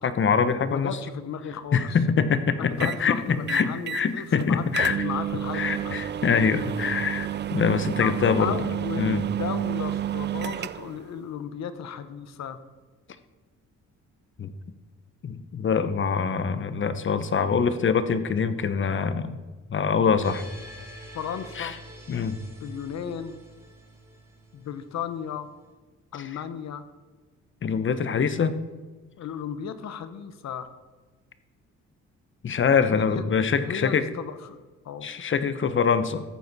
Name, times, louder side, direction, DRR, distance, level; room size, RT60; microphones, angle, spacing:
voice 1, 0.0-1.0 1.7-5.0 5.5-8.6 9.0-9.2 14.4-14.5 15.2-19.4 19.7-20.4 21.6-21.8 22.1-22.4 26.2-26.3 27.6-28.6 32.4-34.0 35.0-36.2, left 6 dB, 40° left, 12 dB, 1.0 m, -24 dB
voice 2, 0.6-2.0 2.6-6.0 8.0-8.1 8.4-12.6 21.1-21.8 22.6-23.4 24.5-25.5 26.1-26.9 29.2-30.7 32.9-33.3 33.6-35.1, left 8 dB, 60° left, 11 dB, 1.1 m, -35 dB
sound 1, 2.8-3.0 3.5-4.1 4.4-4.5 4.7-11.0, right 11 dB, 35° right, 0.4 m, -30 dB
sound 2, 20.2-25.3, right 1 dB, 10° right, 2.7 m, -47 dB
14.0 x 8.9 x 4.2 m, 1.3 s
cardioid pair, 90°, 30 cm